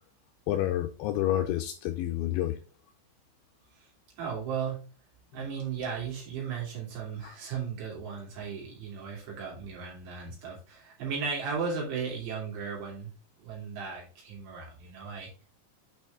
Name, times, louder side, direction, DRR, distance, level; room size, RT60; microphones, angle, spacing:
voice 1, 0.5-2.6, left 13 dB, 80° left, 2.7 m, -29 dB
voice 2, 4.2-4.8 5.3-13.1 13.4-15.3, right 6 dB, 60° right, 5.1 m, -36 dB
8.8 x 4.8 x 3.8 m
omnidirectional pair, 5.8 m